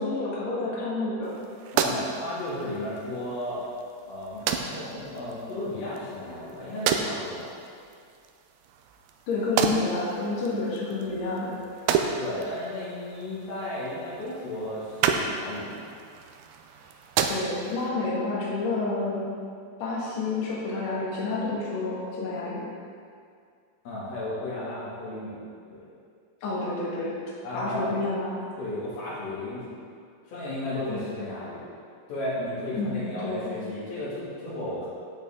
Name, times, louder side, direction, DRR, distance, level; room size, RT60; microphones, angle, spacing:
voice 1, 0.0-1.3 9.3-11.5 17.3-19.3 19.8-22.6 26.4-27.1 27.5-28.4 30.9-31.0 32.7-33.5, left 3 dB, 55° left, -6 dB, 2.8 m, -29 dB
sound 1, 1.2-17.9, right 7 dB, 80° right, 2.1 m, -32 dB
voice 2, 1.7-3.6 4.1-7.5 12.2-15.9 23.8-25.4 25.7-25.9 27.4-27.9 28.6-29.8 30.3-31.6 32.1-34.9, left 1 dB, 90° left, -8 dB, 4.3 m, -34 dB
10.5 x 8.9 x 3.7 m, 2.3 s
omnidirectional pair, 4.0 m